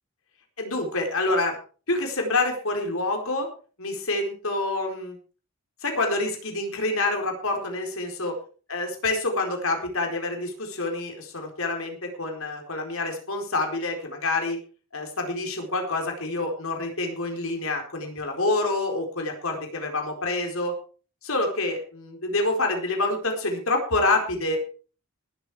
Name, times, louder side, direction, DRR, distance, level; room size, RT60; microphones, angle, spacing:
voice 1, 0.6-1.6 1.9-3.5 3.8-5.2 5.8-8.3 8.7-14.6 14.9-20.7 21.2-24.6, left 2 dB, 70° left, 3 dB, 4.3 m, -27 dB
19.5 x 8.2 x 4.9 m, 0.38 s
head